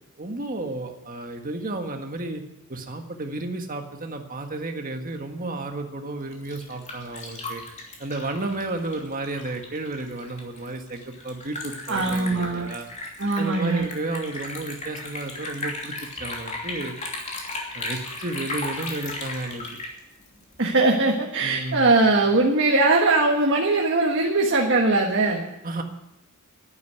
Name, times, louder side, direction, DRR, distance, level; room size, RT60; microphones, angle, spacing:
voice 1, 0.2-2.4 2.7-7.6 8.0-12.9 13.4-15.9 16.2-17.0 17.7-19.7 21.4-21.9 25.6-25.8, right 2 dB, 40° right, 4 dB, 1.6 m, -32 dB
Liquid, 6.2-20.8, left 2 dB, 35° left, 2.9 m, -36 dB
voice 2, 11.9-12.7 13.2-13.9 20.6-25.5, right 2 dB, 55° right, 0 dB, 1.5 m, -21 dB
11.0 x 9.4 x 9.4 m, 0.88 s
head